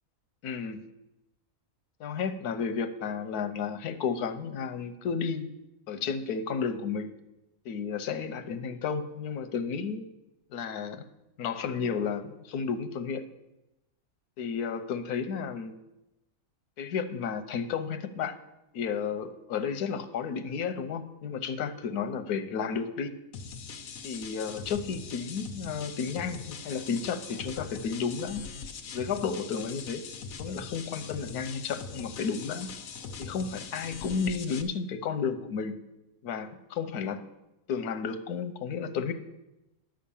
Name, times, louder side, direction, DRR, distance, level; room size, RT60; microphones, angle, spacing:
voice 1, 0.4-0.8 2.0-5.5 5.9-7.1 7.6-10.0 10.5-11.1 11.4-13.2 14.4-15.7 16.8-18.4 18.7-23.1 24.0-28.4 28.9-30.0 30.4-32.7 33.2-35.7 36.2-37.2 37.7-39.1, left 6 dB, 85° left, 11 dB, 1.3 m, -32 dB
sound 1, 23.3-34.6, left 5 dB, 65° left, 1.2 m, -42 dB
10.5 x 6.5 x 7.0 m, 0.95 s
omnidirectional pair, 1.6 m